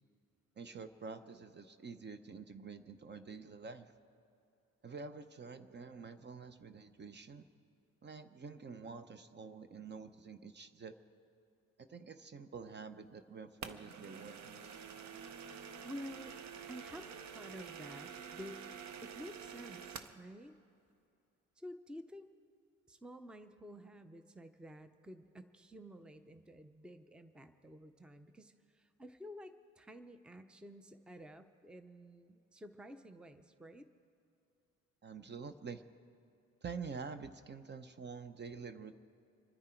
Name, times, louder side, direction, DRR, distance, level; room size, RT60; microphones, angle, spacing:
voice 1, 0.6-3.9 4.8-7.4 8.0-10.9 11.8-14.8 35.0-35.8 36.6-38.9, right 5 dB, 35° right, 11 dB, 0.8 m, -48 dB
sound 1, 13.6-20.2, right 7 dB, 65° right, 0.9 m, -48 dB
voice 2, 15.8-16.4 16.7-18.6 19.0-20.6 21.6-22.3 22.9-33.9, equal, 5° right, 9 dB, 0.6 m, -51 dB
26.5 x 10.0 x 4.5 m, 2.6 s
cardioid pair, 90°, 30 cm